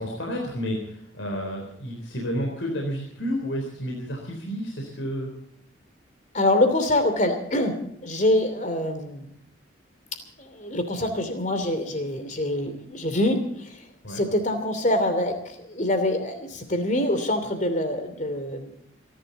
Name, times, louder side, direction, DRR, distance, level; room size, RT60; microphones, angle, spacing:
voice 1, 0.0-5.3 14.0-14.3, equal, 70° left, 0 dB, 3.9 m, -31 dB
voice 2, 6.3-9.3 10.4-13.7 14.1-15.4 15.7-18.7, left 1 dB, 40° left, 8 dB, 2.8 m, -25 dB
28.5 x 11.5 x 4.1 m, 0.72 s
head